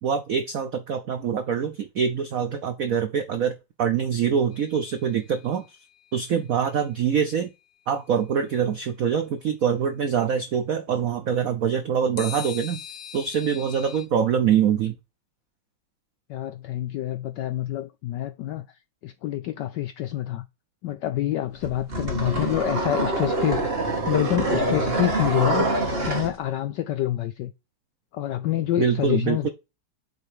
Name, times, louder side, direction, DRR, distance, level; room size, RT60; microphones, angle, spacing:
voice 1, 0.0-5.6 6.1-7.5 7.9-12.8 13.1-15.0 28.8-29.5, right 7 dB, 85° right, 0.7 m, -24 dB
sound 1, 4.5-5.8 12.2-14.1, left 9 dB, 60° left, 1.2 m, -40 dB
voice 2, 16.3-18.7 19.0-20.5 20.8-25.7 26.0-27.5 28.1-29.5, left 13 dB, 80° left, 0.9 m, -27 dB
sound 2, 21.6-26.3, right 2 dB, 30° right, 1.7 m, -25 dB
8.2 x 3.8 x 4.9 m
omnidirectional pair, 2.4 m